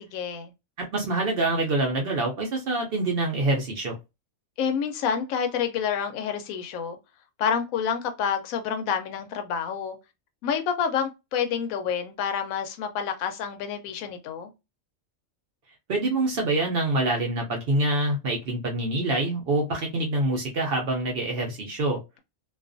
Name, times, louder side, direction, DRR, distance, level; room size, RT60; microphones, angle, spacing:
voice 1, 0.1-0.5 4.6-7.0 7.4-10.0 10.4-14.5, left 7 dB, 80° left, 1.0 m, -28 dB
voice 2, 0.8-4.0 15.9-22.0, right 2 dB, 55° right, 0.7 m, -26 dB
2.5 x 2.3 x 2.5 m
omnidirectional pair, 1.4 m